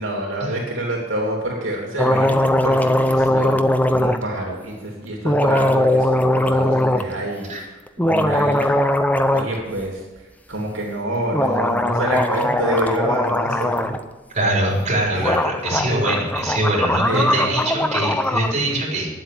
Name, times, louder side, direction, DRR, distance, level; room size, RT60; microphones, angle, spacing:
voice 1, 0.0-8.8 9.3-10.0 10.5-13.9 15.1-15.2 15.9-16.1 16.7-16.8 17.0-17.6, right 1 dB, 70° right, -1 dB, 3.2 m, -27 dB
sound 1, 2.0-4.2 5.2-7.1 7.9-9.5 9.8-9.9 11.3-14.0 14.9-15.0 15.2-18.5, left 1 dB, 10° left, 0.6 m, -20 dB
voice 2, 14.3-19.1, right 1 dB, 35° right, -3 dB, 4.2 m, -22 dB
10.5 x 8.0 x 9.5 m, 1.1 s
head